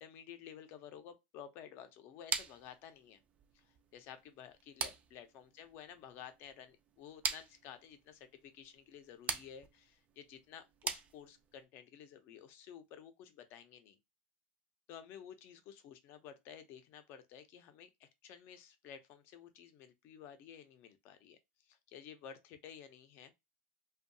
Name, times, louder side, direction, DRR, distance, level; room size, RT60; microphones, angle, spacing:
voice 1, 0.0-3.2 3.5-14.0 14.9-23.3, left 8 dB, 45° left, 0.5 m, -53 dB
sound 1, 2.3-11.6, right 6 dB, 25° right, 0.3 m, -43 dB
2.6 x 2.3 x 2.6 m
supercardioid pair, 145°, 5 cm